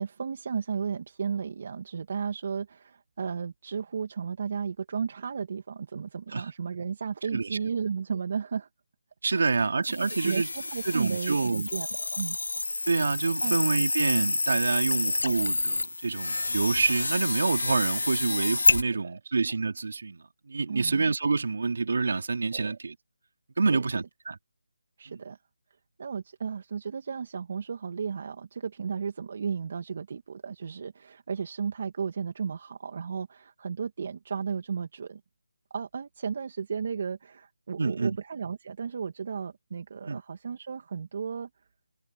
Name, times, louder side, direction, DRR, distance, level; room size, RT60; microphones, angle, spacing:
voice 1, 0.0-8.7 9.3-9.7 10.2-12.4 13.4-13.6 18.3-18.6 19.0-19.3 20.7-21.1 22.5-22.8 23.7-23.8 25.0-25.4 26.0-35.2 35.7-41.5, right 6 dB, 40° right, 2.4 m, -34 dB
voice 2, 9.2-10.5 10.8-11.7 12.9-22.9 23.6-24.4 37.8-38.2 40.1-40.2, right 4 dB, 60° right, 2.9 m, -27 dB
sound 1, 9.8-18.8, left 2 dB, 85° left, 0.8 m, -28 dB
figure-of-eight pair, 170°, 0 cm